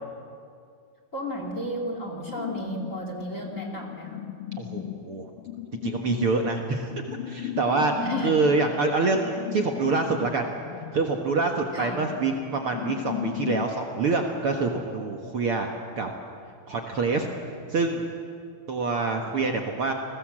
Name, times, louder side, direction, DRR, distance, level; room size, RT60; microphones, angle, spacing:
voice 1, 1.1-4.2 8.0-8.3 11.7-12.0, left 1 dB, 25° left, 3 dB, 2.5 m, -33 dB
sound 1, 2.3-13.7, left 13 dB, 75° left, 1.3 m, -37 dB
voice 2, 4.6-5.2 5.8-6.9 7.3-7.9 8.2-10.5 10.9-15.7 16.0-16.1 16.7-17.3 17.7-18.1 18.7-19.9, right 3 dB, 50° right, 2 dB, 2.0 m, -26 dB
29.5 x 20.5 x 7.7 m, 2.3 s
omnidirectional pair, 3.7 m